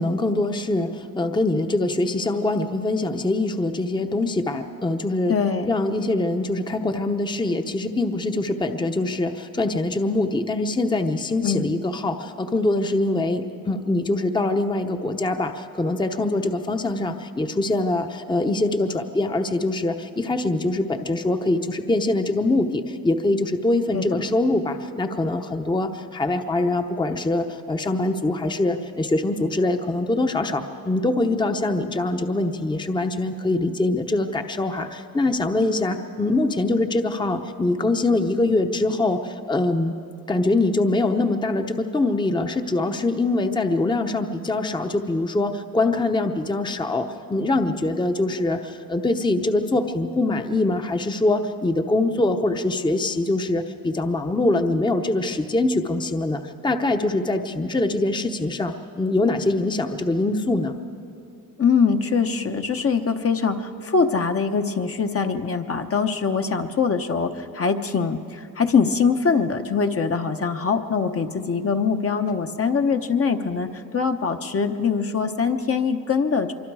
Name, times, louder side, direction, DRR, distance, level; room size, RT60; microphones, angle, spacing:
voice 1, 0.0-5.3 5.7-40.0 40.3-60.8, left 2 dB, 15° left, 6 dB, 0.9 m, -23 dB
voice 2, 5.3-5.7 11.4-11.7 23.9-24.0 61.6-76.5, left 5 dB, 40° left, 5 dB, 1.0 m, -23 dB
25.0 x 24.0 x 4.8 m, 2.5 s
cardioid pair, 95°, 36 cm